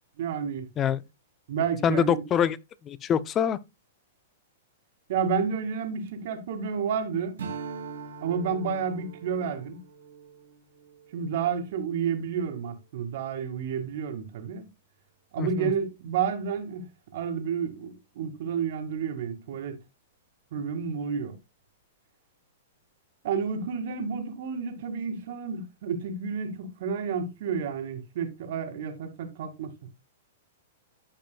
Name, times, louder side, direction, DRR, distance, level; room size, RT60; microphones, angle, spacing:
voice 1, 0.2-0.7 1.5-2.2 5.1-7.4 8.2-9.8 11.1-14.7 15.3-19.8 20.5-21.4 23.2-29.9, right 6 dB, 60° right, 2.1 m, -30 dB
voice 2, 1.8-2.6 2.8-3.6 15.4-15.7, left 8 dB, 25° left, 0.5 m, -24 dB
Strum, 7.4-12.1, right 5 dB, 85° right, 2.1 m, -42 dB
14.5 x 5.2 x 2.3 m
hypercardioid pair, 140°, 0 cm